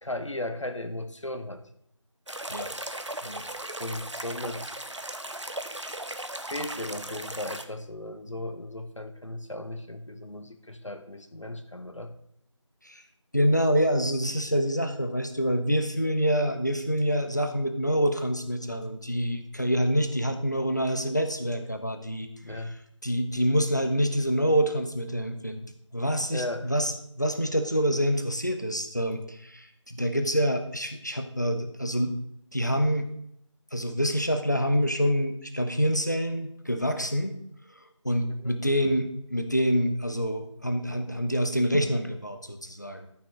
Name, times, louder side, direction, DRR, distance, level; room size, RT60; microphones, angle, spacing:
voice 1, 0.0-1.6 3.8-4.7 6.5-12.1 22.4-22.7 26.3-26.7 38.3-38.5, left 1 dB, 70° left, 8 dB, 1.2 m, -36 dB
sound 1, 2.3-7.6, right 1 dB, 70° right, 0.9 m, -37 dB
voice 2, 13.3-22.7 23.0-25.6 25.9-32.2 32.5-33.1 33.7-37.3 38.0-43.1, equal, 35° left, 7 dB, 0.8 m, -26 dB
13.5 x 6.0 x 3.7 m, 0.72 s
figure-of-eight pair, 175°, 16 cm